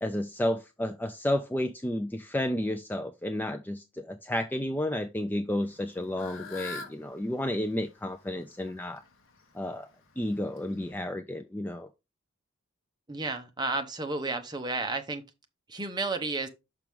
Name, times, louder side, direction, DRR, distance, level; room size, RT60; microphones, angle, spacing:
voice 1, 0.0-9.0 9.5-9.9 10.2-11.9, left 1 dB, 10° left, 0.3 m, -31 dB
Fowl / Bird, 5.6-10.9, left 4 dB, 65° left, 1.1 m, -46 dB
voice 2, 13.1-15.2 15.7-16.5, right 3 dB, 20° right, 0.8 m, -32 dB
6.0 x 6.0 x 3.5 m
head